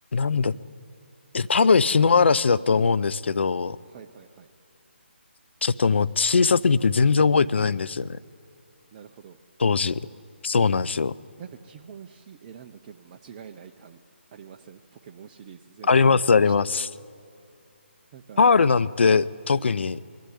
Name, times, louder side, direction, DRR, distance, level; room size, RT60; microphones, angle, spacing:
voice 1, 0.1-0.5 1.3-3.8 5.6-8.2 9.6-10.0 10.4-11.1 15.9-16.9 18.4-20.0, left 5 dB, 65° left, 16 dB, 0.6 m, -20 dB
voice 2, 3.8-4.5 8.9-9.4 11.4-14.0 14.3-16.5 18.1-18.4, right 7 dB, 25° right, 3 dB, 0.7 m, -45 dB
21.0 x 13.0 x 10.0 m, 2.3 s
figure-of-eight pair, 155°, 7 cm